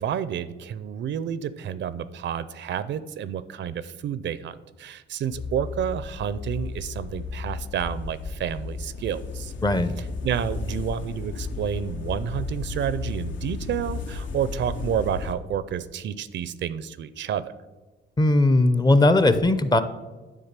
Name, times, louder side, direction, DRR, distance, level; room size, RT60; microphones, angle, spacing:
voice 1, 0.0-9.5 10.2-17.5, right 9 dB, 65° right, 15 dB, 0.5 m, -30 dB
sound 1, 5.3-15.3, left 4 dB, 65° left, 0.8 m, -34 dB
voice 2, 9.6-9.9 18.2-19.8, left 2 dB, 20° left, 12 dB, 0.6 m, -18 dB
10.0 x 3.7 x 7.3 m, 1.2 s
cardioid pair, 100°, 21 cm